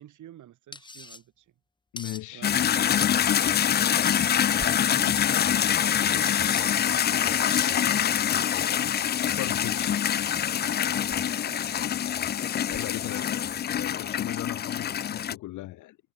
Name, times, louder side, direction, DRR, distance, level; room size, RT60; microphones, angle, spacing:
voice 1, 0.0-1.5 2.3-2.6 3.8-6.6 7.3-8.1 11.5-11.7 13.0-13.3, right 12 dB, 75° right, 5.2 m, -49 dB
sound 1, 0.7-1.2 2.0-2.2 3.0-3.3 4.1-4.3 5.2-5.5 6.3-6.6 7.5-7.7, left 3 dB, 15° left, 1.3 m, -39 dB
voice 2, 1.9-2.5 9.4-9.9 12.7-16.0, left 17 dB, 90° left, 1.4 m, -37 dB
sound 2, 2.0-14.1, right 4 dB, 30° right, 3.2 m, -55 dB
sound 3, 2.4-15.4, left 9 dB, 35° left, 0.4 m, -25 dB
cardioid pair, 90°, 30 cm